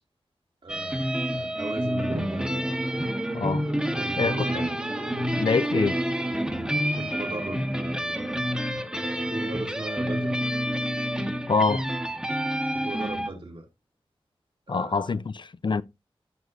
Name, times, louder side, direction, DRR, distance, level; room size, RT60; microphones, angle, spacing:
voice 1, 0.6-2.5 3.9-4.7 6.9-8.5 9.0-10.4 12.7-13.7 14.7-15.1, right 2 dB, 60° right, 3.3 m, -37 dB
sound 1, 0.7-13.3, equal, 10° right, 1.5 m, -28 dB
Drum, 2.1-11.4, right 2 dB, 35° right, 1.9 m, -40 dB
voice 2, 3.3-3.7 4.2-4.4 5.4-6.0 11.5-11.8 14.7-15.8, left 4 dB, 50° left, 0.4 m, -25 dB
14.5 x 6.1 x 2.6 m
wide cardioid pair, 80°, 10 cm